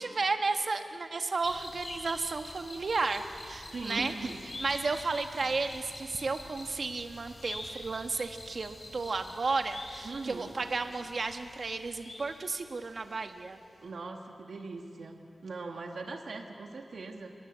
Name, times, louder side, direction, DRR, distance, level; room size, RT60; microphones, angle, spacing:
voice 1, 0.0-4.3 4.6-13.6, right 3 dB, 55° right, 6 dB, 1.5 m, -33 dB
sound 1, 1.4-13.1 13.4-13.5, left 1 dB, 35° left, 3.8 m, -46 dB
voice 2, 3.7-4.4 10.0-10.5 13.8-17.3, right 3 dB, 70° right, 3 dB, 1.9 m, -40 dB
26.5 x 21.5 x 8.2 m, 2.5 s
wide cardioid pair, 100°, 0 cm